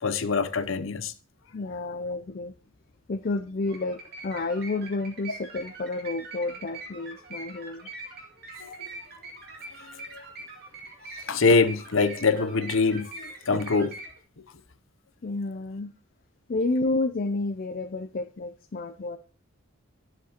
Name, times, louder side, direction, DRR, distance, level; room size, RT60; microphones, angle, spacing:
voice 1, 0.0-1.1 8.6-8.9 9.8-10.2 11.1-14.0, left 4 dB, 75° left, 0.7 m, -25 dB
voice 2, 1.5-2.5 3.1-7.9 15.2-15.9 16.5-19.2, left 2 dB, 45° left, 0.4 m, -30 dB
sound 1, 3.6-14.2, right 3 dB, 50° right, 2.3 m, -43 dB
11.0 x 7.4 x 2.9 m
head